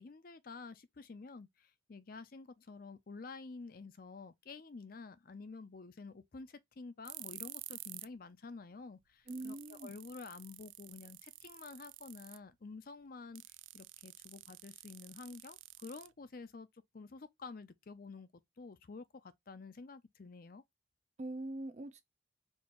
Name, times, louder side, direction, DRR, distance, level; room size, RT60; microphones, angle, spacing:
voice 1, 0.0-13.4 13.7-16.7 16.9-18.3 18.6-20.6, left 4 dB, 50° left, 0.5 m, -50 dB
sound 1, 7.0-8.2 8.5-8.6 9.0-9.1 9.3-12.5 13.3-16.5, right 19 dB, 80° right, 0.3 m, -50 dB
voice 2, 9.3-9.9 21.2-22.0, right 2 dB, 35° right, 0.7 m, -42 dB
4.4 x 2.5 x 4.4 m
head